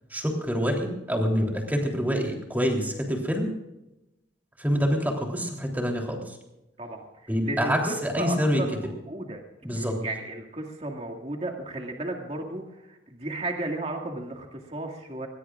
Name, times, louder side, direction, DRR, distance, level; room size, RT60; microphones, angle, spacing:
voice 1, 0.1-3.5 4.6-6.4 7.3-8.6 9.6-10.0, equal, 10° right, 1 dB, 3.4 m, -26 dB
voice 2, 6.8-9.4 9.7-15.3, right 2 dB, 35° right, 1 dB, 2.1 m, -34 dB
21.5 x 20.5 x 2.5 m, 0.95 s
head